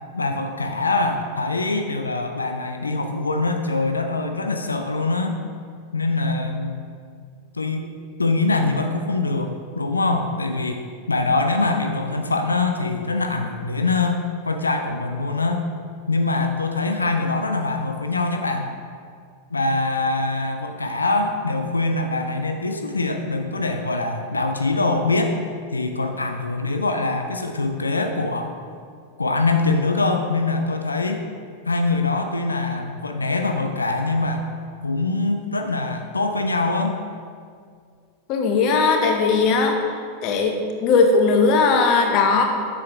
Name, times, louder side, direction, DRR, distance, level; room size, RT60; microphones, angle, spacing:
voice 1, 0.1-5.4 5.9-6.8 7.5-7.9 8.2-15.7 16.1-18.7 19.5-25.4 25.7-28.6 29.2-31.2 31.7-34.5 34.8-37.0, left 3 dB, 80° left, 5 dB, 0.4 m, -23 dB
voice 2, 38.3-39.8 40.2-42.4, left 4 dB, 40° left, 3 dB, 1.0 m, -18 dB
7.5 x 6.3 x 3.4 m, 2.1 s
figure-of-eight pair, 90°, 0 cm